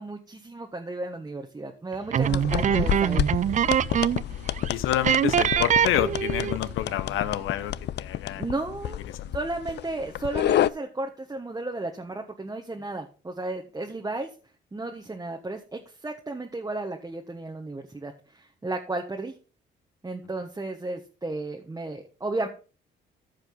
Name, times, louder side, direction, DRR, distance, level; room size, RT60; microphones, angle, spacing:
voice 1, 0.0-3.2 8.4-9.0 9.3-14.3 14.7-19.3 20.0-22.5, right 2 dB, 20° right, 2 dB, 1.4 m, -34 dB
sound 1, 2.1-4.3 4.6-4.7 5.0-6.7, right 9 dB, 40° right, 0.4 m, -23 dB
sound 2, 2.2-10.7, left 12 dB, 60° left, 0.4 m, -29 dB
voice 2, 4.7-8.4 9.1-9.3, left 12 dB, 90° left, 12 dB, 1.0 m, -29 dB
14.5 x 5.2 x 3.8 m, 0.35 s
cardioid pair, 90°, 20 cm